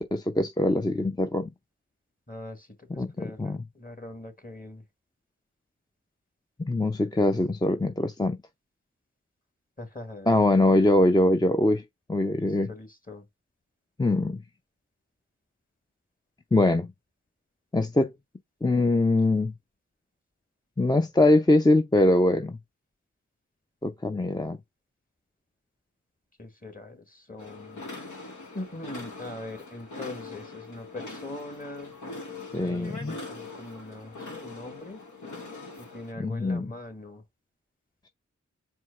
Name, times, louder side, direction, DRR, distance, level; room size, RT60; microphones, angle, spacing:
voice 1, 0.0-1.5 3.0-3.6 6.7-8.4 10.3-11.8 12.1-12.7 14.0-14.4 16.5-16.9 17.7-18.1 18.6-19.5 20.8-22.6 23.8-24.6 32.5-33.2 36.2-36.7, left 2 dB, 15° left, 0.5 m, -23 dB
voice 2, 2.3-4.8 9.8-10.3 12.3-13.2 26.4-27.8 28.1-28.2 28.5-32.0 32.6-35.0 35.8-37.2, left 2 dB, 30° left, 1.6 m, -42 dB
sound 1, 27.4-36.1, left 3 dB, 80° left, 1.1 m, -42 dB
4.4 x 2.1 x 4.6 m
cardioid pair, 40°, 30 cm